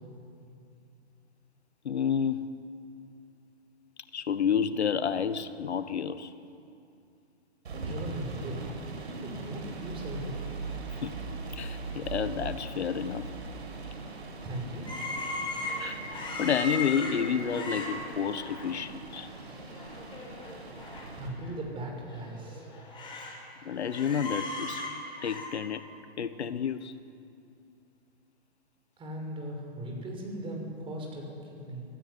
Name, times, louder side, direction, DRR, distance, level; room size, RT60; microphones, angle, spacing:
voice 1, 1.8-2.5 4.1-6.3 11.0-11.2 11.5-13.3 15.8-19.3 23.6-24.8 25.2-25.8 26.2-26.9, left 7 dB, 80° left, 12 dB, 1.5 m, -30 dB
sound 1, 7.6-21.3, right 3 dB, 80° right, 7.7 m, -40 dB
voice 2, 7.7-8.7 9.0-10.4 14.3-14.9 21.1-22.7 29.0-31.8, right 1 dB, 15° right, 1 dB, 6.3 m, -38 dB
sound 2, 14.9-18.7 19.1-19.3 19.6-21.1 21.4-21.5 22.1-23.4 23.7-25.5, left 2 dB, 15° left, 5.5 m, -37 dB
27.0 x 16.5 x 9.8 m, 2.5 s
hypercardioid pair, 140°, 33 cm